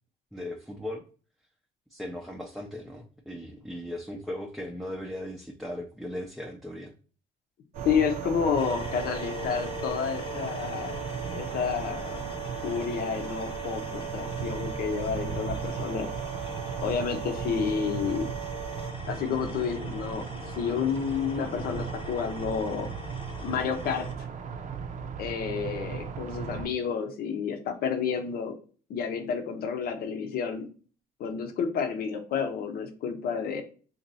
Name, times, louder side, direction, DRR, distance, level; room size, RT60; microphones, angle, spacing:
voice 1, 0.3-1.0 1.9-6.9, left 1 dB, ahead, 0 dB, 0.5 m, -38 dB
sound 1, 7.7-26.7, right 6 dB, 45° right, 0.5 m, -37 dB
sound 2, 7.7-18.9, right 11 dB, 90° right, 0.9 m, -39 dB
voice 2, 7.8-10.9 11.3-12.2 12.6-16.1 16.8-18.3 19.1-20.2 20.6-22.9 23.4-24.1 25.2-28.6 28.9-30.7 31.2-33.6, left 6 dB, 65° left, 5 dB, 0.7 m, -30 dB
sound 3, 8.6-24.1, left 4 dB, 30° left, 0.7 m, -43 dB
2.9 x 2.7 x 4.0 m, 0.39 s
cardioid pair, 110°, 17 cm